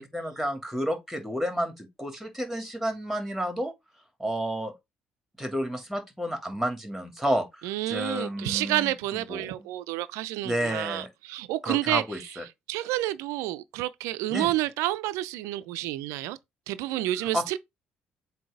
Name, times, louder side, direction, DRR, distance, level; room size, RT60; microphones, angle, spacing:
voice 1, 0.0-3.7 4.2-4.7 5.4-9.7 10.4-11.1 11.6-12.4 14.3-14.5 17.3-17.4, equal, ahead, 2.7 m, -31 dB
voice 2, 7.6-12.0 12.7-16.4 16.7-17.6, right 16 dB, 75° right, 0.5 m, -29 dB
7.6 x 2.9 x 5.0 m
hypercardioid pair, 50°, 5 cm